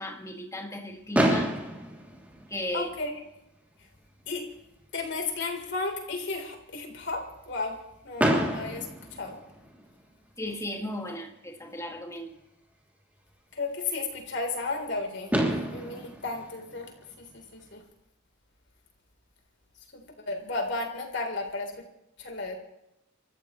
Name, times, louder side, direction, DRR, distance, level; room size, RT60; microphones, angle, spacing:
voice 1, 0.0-1.5 2.5-2.9 10.4-12.3, left 1 dB, 15° left, 2 dB, 2.1 m, -35 dB
Fireworks, 1.1-3.2 4.0-4.1 4.3-4.5 4.8-4.9 8.2-10.0 11.7-11.8 14.8-14.9 15.3-17.6, right 1 dB, 10° right, 2.9 m, -29 dB
voice 2, 2.7-3.1 4.3-4.4 4.9-7.8 8.0-9.4 13.5-15.3 15.7-16.9 17.3-17.8 19.9-21.8 22.2-22.5, left 3 dB, 60° left, 2 dB, 3.8 m, -33 dB
28.5 x 14.5 x 3.2 m, 0.86 s
head